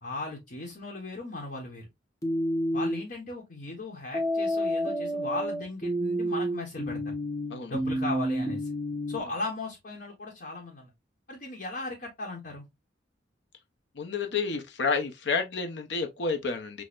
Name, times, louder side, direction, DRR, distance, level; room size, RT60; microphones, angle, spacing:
voice 1, 0.0-1.9 2.7-7.1 7.7-8.7 9.1-10.9 11.3-12.6, left 2 dB, 50° left, 1.0 m, -37 dB
sound 1, 2.2-3.0 4.1-9.2, equal, 20° left, 0.6 m, -29 dB
voice 2, 14.0-16.8, left 4 dB, 70° left, 0.7 m, -30 dB
6.0 x 2.1 x 2.4 m
head